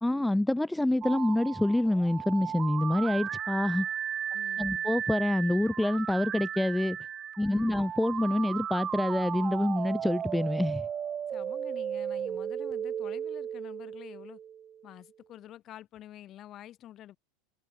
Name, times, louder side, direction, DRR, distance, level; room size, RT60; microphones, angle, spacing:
voice 1, 0.0-3.9 4.6-7.0 7.4-10.9, left 1 dB, 5° left, 0.4 m, -27 dB
sound 1, 1.0-14.9, right 9 dB, 30° right, 1.2 m, -35 dB
voice 2, 4.3-4.9 7.5-7.8 11.3-14.4 14.8-17.2, left 12 dB, 40° left, 6.2 m, -48 dB
hypercardioid pair, 110°, 0 cm